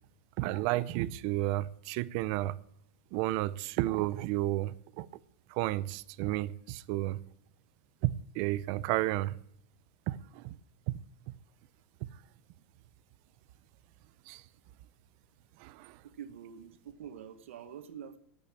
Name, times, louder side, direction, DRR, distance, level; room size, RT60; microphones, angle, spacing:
voice 1, 0.4-2.6 3.1-5.1 5.5-7.2 8.0-9.4 10.1-10.5 10.9-11.0 14.3-14.4 15.6-16.0, right 16 dB, 50° right, 0.7 m, -32 dB
voice 2, 16.0-18.2, right 8 dB, 90° right, 1.7 m, -46 dB
12.5 x 8.6 x 8.6 m
supercardioid pair, 145°, 7 cm